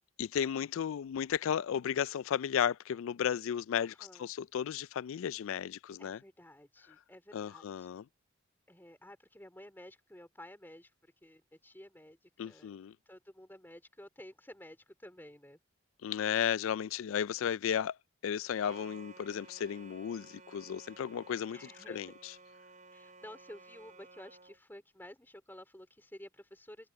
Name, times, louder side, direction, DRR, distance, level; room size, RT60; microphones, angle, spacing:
voice 1, 0.2-6.2 7.3-8.1 12.4-12.9 16.0-18.0 18.2-22.3, left 8 dB, 75° left, 0.3 m, -34 dB
voice 2, 3.7-4.3 6.0-8.0 8.7-10.9 11.2-12.2 12.4-12.8 13.1-15.6 21.5-22.1 22.9-26.9, left 1 dB, 10° left, 3.9 m, -52 dB
sound 1, 18.6-24.6, right 3 dB, 40° right, 5.8 m, -55 dB
head